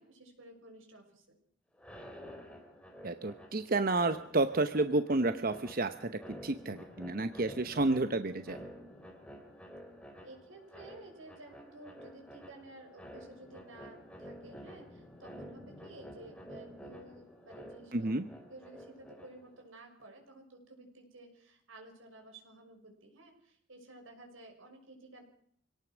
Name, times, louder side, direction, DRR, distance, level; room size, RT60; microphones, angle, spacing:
voice 1, 0.0-1.4 10.2-18.1 18.5-25.2, right 2 dB, 90° right, 4 dB, 6.2 m, -53 dB
sound 1, 1.7-19.6, equal, 5° left, 3.5 m, -50 dB
voice 2, 3.0-6.1 6.4-8.6 17.9-18.2, right 2 dB, 45° right, 10 dB, 0.9 m, -30 dB
25.5 x 18.0 x 6.2 m, 0.65 s
head